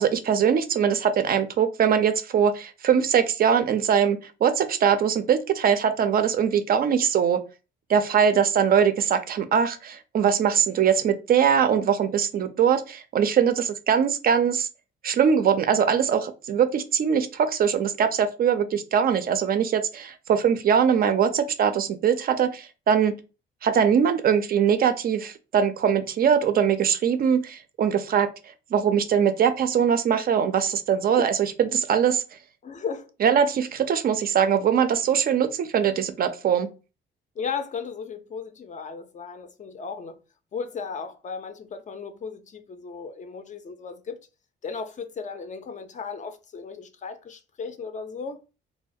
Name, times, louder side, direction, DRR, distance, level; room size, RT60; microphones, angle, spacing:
voice 1, 0.0-7.4 7.9-14.7 15.0-23.1 23.6-28.3 28.7-32.2 33.2-36.7, right 7 dB, 50° right, 0.4 m, -22 dB
voice 2, 32.6-33.1 37.4-40.2 40.5-44.3 44.6-48.4, left 5 dB, 40° left, 0.4 m, -35 dB
2.3 x 2.1 x 2.6 m
cardioid pair, 90°, 20 cm